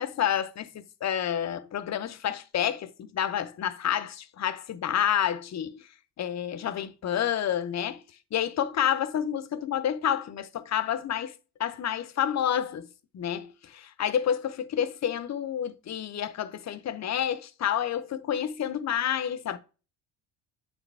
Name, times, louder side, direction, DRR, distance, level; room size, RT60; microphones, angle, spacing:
voice 1, 0.0-5.8 6.2-8.0 8.3-11.3 11.6-12.9 13.1-19.6, left 9 dB, 35° left, 0.7 m, -29 dB
8.7 x 3.8 x 3.3 m
supercardioid pair, 85°, 46 cm